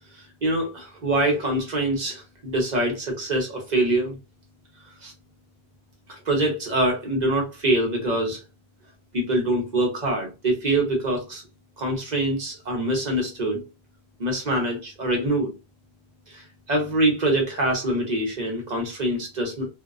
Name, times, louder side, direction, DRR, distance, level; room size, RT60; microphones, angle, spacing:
voice 1, 0.4-4.2 5.0-5.1 6.1-8.4 9.1-11.4 11.8-13.6 14.2-15.5 16.3-19.7, right 1 dB, 45° right, 0.8 m, -24 dB
2.6 x 2.1 x 2.4 m
omnidirectional pair, 1.1 m